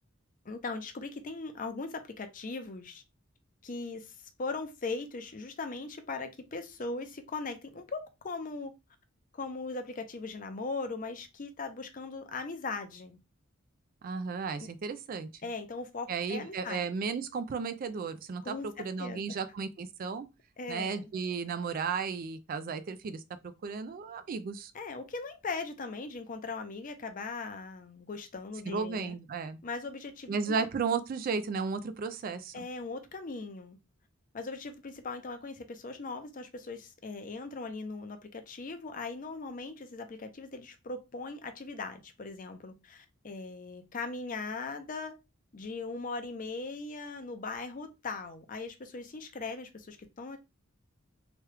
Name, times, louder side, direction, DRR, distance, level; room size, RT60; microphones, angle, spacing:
voice 1, 0.4-3.0 3.6-4.1 4.4-8.7 9.3-13.2 14.6-14.7 15.4-16.8 18.4-19.4 20.6-21.1 24.7-29.2 29.6-30.5 32.5-33.8 34.3-45.1 45.5-50.4, left 3 dB, 40° left, 0.5 m, -39 dB
voice 2, 14.0-15.3 16.1-20.3 20.7-23.2 23.6-24.7 28.6-29.6 30.3-32.5, right 5 dB, 45° right, 0.3 m, -34 dB
3.0 x 2.3 x 3.2 m
head